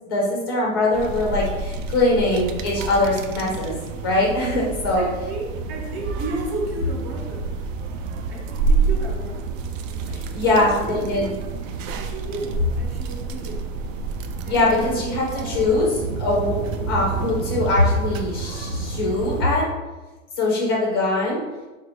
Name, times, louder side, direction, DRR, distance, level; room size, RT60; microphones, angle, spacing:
voice 1, 0.1-3.7 4.0-5.1 10.1-11.3 14.5-19.7 20.4-21.4, left 2 dB, 20° left, -2 dB, 0.4 m, -22 dB
sound 1, 0.9-19.4, right 4 dB, 70° right, 0.5 m, -29 dB
voice 2, 4.9-7.5 8.3-9.5 10.5-11.1 12.0-13.7 14.4-15.0 15.3-16.2, right 2 dB, 50° right, -2 dB, 1.1 m, -33 dB
4.0 x 2.0 x 4.4 m, 1.2 s
supercardioid pair, 175°, 40 cm